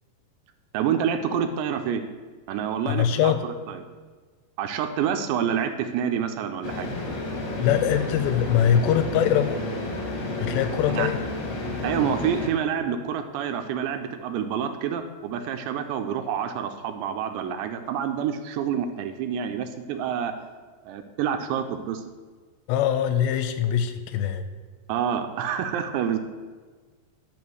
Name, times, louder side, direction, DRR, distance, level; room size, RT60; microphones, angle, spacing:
voice 1, 0.7-2.0 2.5-3.8 4.6-6.9 10.9-11.1 11.8-20.3 20.9-22.0 24.9-26.2, right 8 dB, 85° right, 6 dB, 2.9 m, -27 dB
voice 2, 2.9-3.5 7.6-9.6 10.4-11.2 22.7-24.4, left 9 dB, 85° left, 10 dB, 2.7 m, -23 dB
sound 1, 6.6-12.5, left 2 dB, 50° left, 2.1 m, -31 dB
10.5 x 5.8 x 7.7 m, 1.4 s
omnidirectional pair, 5.1 m